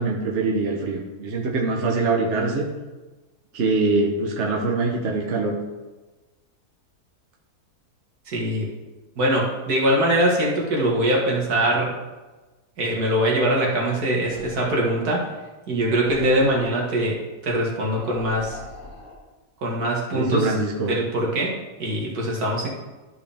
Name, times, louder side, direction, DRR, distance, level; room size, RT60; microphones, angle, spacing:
voice 1, 0.0-2.6 3.5-5.6 20.1-20.9, right 3 dB, 50° right, -1 dB, 1.2 m, -23 dB
voice 2, 8.3-8.7 9.2-11.9 12.8-15.3 15.7-18.6 19.6-20.5 20.9-22.7, right 1 dB, 70° right, -2 dB, 2.1 m, -22 dB
sound 1, 14.2-14.8 15.9-16.7 17.9-19.2, left 1 dB, 40° left, 3.5 m, -41 dB
13.0 x 4.8 x 3.5 m, 1.2 s
omnidirectional pair, 1.7 m